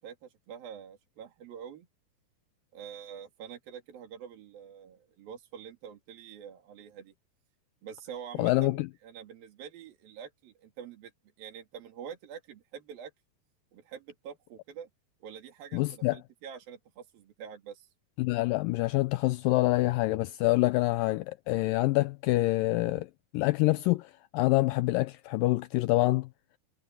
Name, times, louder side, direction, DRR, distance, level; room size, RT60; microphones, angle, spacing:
voice 1, 0.0-1.9 2.7-7.1 7.8-11.1 11.4-13.1 13.7-14.9 15.2-17.9, right 8 dB, 65° right, 4.5 m, -46 dB
voice 2, 8.4-8.9 15.7-16.2 18.2-23.1 23.3-26.3, left 20 dB, 90° left, 1.9 m, -26 dB
omnidirectional pair, 4.5 m